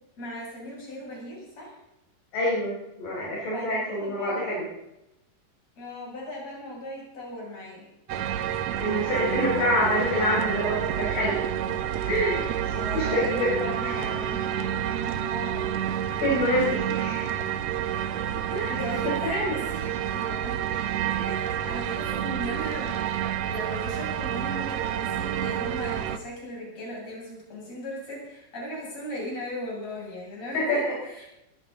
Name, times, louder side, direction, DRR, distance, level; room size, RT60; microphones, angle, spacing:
voice 1, 0.2-1.8 3.5-4.5 5.8-7.9 12.7-15.7 18.7-19.9 20.1-20.6 21.2-31.3, left 1 dB, 50° left, -4 dB, 8.5 m, -38 dB
voice 2, 2.3-4.6 8.8-11.4 12.0-14.0 16.2-17.3 18.5-18.8 19.0-19.6 30.5-30.9, left 1 dB, 70° left, -6 dB, 6.3 m, -27 dB
sound 1, 8.1-26.2, right 10 dB, 70° right, 1.8 m, -29 dB
23.0 x 14.5 x 4.0 m, 0.89 s
omnidirectional pair, 3.9 m